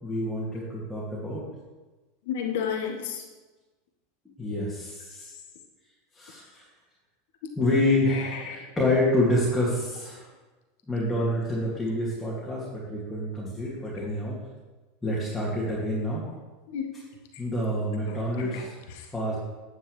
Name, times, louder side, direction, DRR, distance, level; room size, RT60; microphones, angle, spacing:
voice 1, 0.0-1.5 4.4-5.3 6.1-6.6 7.6-10.3 10.9-14.4 15.0-16.2 17.4-18.7 19.1-19.4, left 1 dB, 10° left, -7 dB, 2.3 m, -27 dB
voice 2, 2.3-3.2 8.1-8.6 16.7-16.8 18.0-19.1, left 8 dB, 60° left, 3 dB, 1.1 m, -33 dB
9.7 x 8.0 x 3.2 m, 1.2 s
figure-of-eight pair, 85°, 0 cm